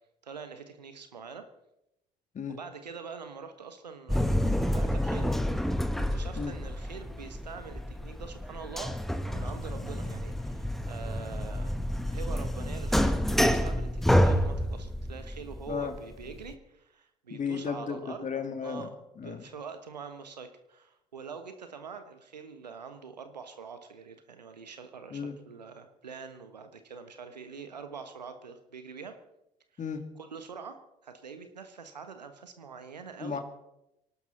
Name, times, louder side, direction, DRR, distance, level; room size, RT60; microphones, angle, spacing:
voice 1, 0.2-1.4 2.5-5.3 5.7-11.7 12.1-18.3 18.6-19.0 19.2-29.2 29.7-29.9 30.1-30.8 31.0-33.4, right 5 dB, 90° right, 9 dB, 1.3 m, -44 dB
sound 1, 4.1-16.5, equal, ahead, 1.3 m, -29 dB
voice 2, 9.7-10.1 15.7-15.9 17.3-18.9 19.2-19.4 25.1-25.4 29.8-30.0 33.2-33.4, left 6 dB, 35° left, 7 dB, 2.5 m, -34 dB
24.5 x 12.0 x 4.4 m, 0.84 s
figure-of-eight pair, 55°, 21 cm